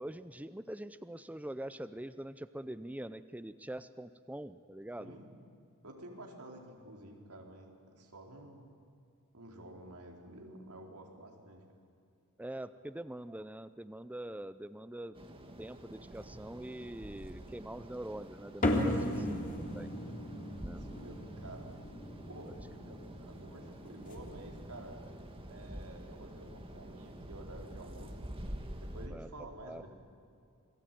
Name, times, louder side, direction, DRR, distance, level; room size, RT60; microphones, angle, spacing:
voice 1, 0.0-5.2 12.4-15.2 15.6-19.1 19.7-19.9 20.6-20.8 29.1-29.3 29.6-29.8, right 1 dB, 5° right, 12 dB, 0.5 m, -44 dB
voice 2, 5.0-5.4 5.8-8.6 9.3-11.6 18.8-19.4 20.8-21.7 22.3-25.0 25.5-28.2 28.8-29.9, right 1 dB, 90° right, 1 dB, 4.4 m, -50 dB
sound 1, 15.1-29.1, right 1 dB, 25° right, 2.0 m, -48 dB
sound 2, 18.6-25.3, left 1 dB, 40° left, 3.3 m, -37 dB
28.0 x 21.5 x 9.3 m, 2.4 s
head